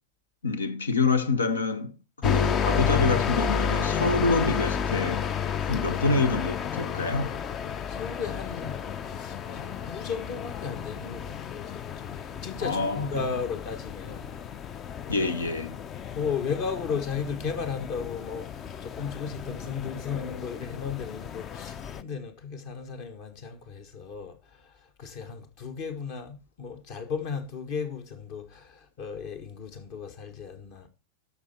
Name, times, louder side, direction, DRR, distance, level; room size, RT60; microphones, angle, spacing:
voice 1, 0.4-5.3 5.6-7.4 12.6-13.1 15.1-15.8, left 3 dB, 70° left, 1.2 m, -27 dB
sound 1, 2.2-22.0, left 7 dB, 30° left, 0.6 m, -32 dB
voice 2, 7.9-14.3 16.1-30.9, left 6 dB, 45° left, 1.6 m, -35 dB
12.5 x 5.9 x 4.3 m
figure-of-eight pair, 90°, 0 cm